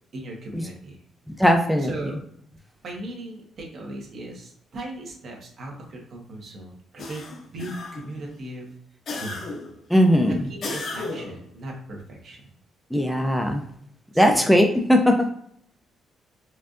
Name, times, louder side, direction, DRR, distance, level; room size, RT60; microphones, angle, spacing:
voice 1, 0.1-1.0 1.8-2.3 2.8-7.2 7.5-8.7 9.1-9.5 10.2-12.5 14.1-14.4, right 1 dB, 55° right, -1 dB, 1.2 m, -37 dB
voice 2, 1.4-1.9 9.9-10.4 12.9-13.6 14.2-15.1, equal, ahead, 3 dB, 0.4 m, -18 dB
sound 1, 7.0-8.2 9.1-9.8 10.6-11.4, left 3 dB, 55° left, 0.7 m, -34 dB
4.4 x 2.6 x 2.5 m, 0.67 s
cardioid pair, 90°, 0 cm